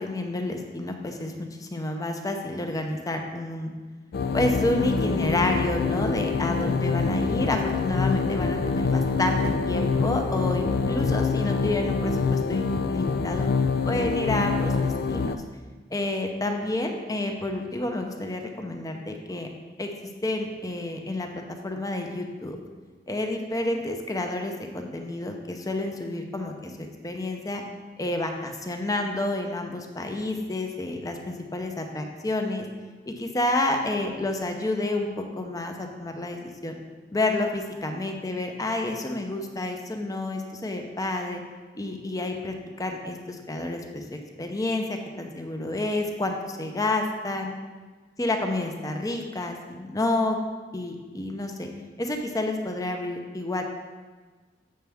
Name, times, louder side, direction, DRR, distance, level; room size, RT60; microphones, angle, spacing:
voice 1, 0.0-3.7 4.3-13.5 13.9-15.4 15.9-19.5 19.8-19.9 20.2-22.6 23.1-27.6 28.0-32.6 33.1-36.7 37.1-41.4 41.8-47.5 48.2-50.4 50.7-51.7 52.0-53.6, left 2 dB, 20° left, 4 dB, 0.6 m, -29 dB
sound 1, 4.1-15.4, left 4 dB, 60° left, 0.4 m, -25 dB
7.6 x 5.7 x 3.5 m, 1.4 s
head